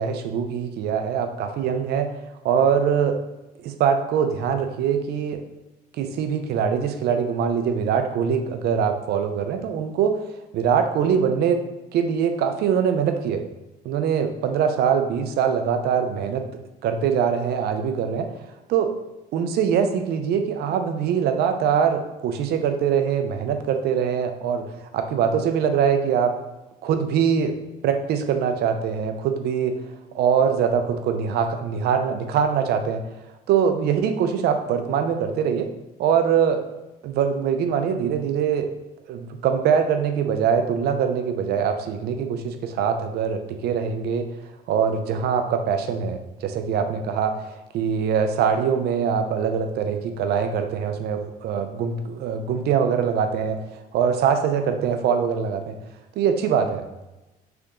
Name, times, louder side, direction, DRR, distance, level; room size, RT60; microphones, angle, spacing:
voice 1, 0.0-2.1 2.4-3.2 3.6-5.4 6.0-10.2 10.5-11.6 11.9-13.4 13.8-16.5 16.8-18.3 18.7-18.9 19.3-24.7 24.9-26.3 26.8-27.5 27.8-29.8 30.1-33.0 33.5-35.7 36.0-36.6 37.0-38.7 39.1-44.3 44.7-53.6 53.9-55.8 56.2-56.8, right 7 dB, 70° right, 7 dB, 0.6 m, -23 dB
3.8 x 3.5 x 3.6 m, 0.99 s
cardioid pair, 110°, 17 cm